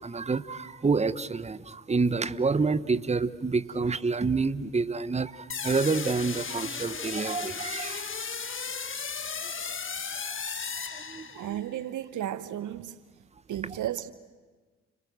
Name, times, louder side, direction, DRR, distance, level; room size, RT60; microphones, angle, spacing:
voice 1, 0.0-8.2 9.4-10.0 10.9-11.5, right 4 dB, 15° right, 1.1 m, -28 dB
sound 1, 5.5-11.7, left 5 dB, 30° left, 1.6 m, -35 dB
voice 2, 11.3-13.0 13.5-14.1, right 11 dB, 55° right, 1.0 m, -34 dB
30.0 x 25.5 x 7.9 m
figure-of-eight pair, 40°, 37 cm